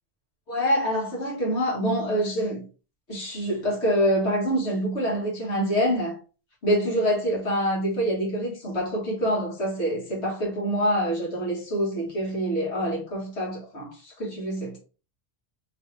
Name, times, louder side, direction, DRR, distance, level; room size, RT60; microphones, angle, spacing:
voice 1, 0.5-2.6 3.1-6.2 6.6-14.8, equal, 85° left, 1.9 m, -26 dB
3.2 x 3.2 x 3.2 m
omnidirectional pair, 1.1 m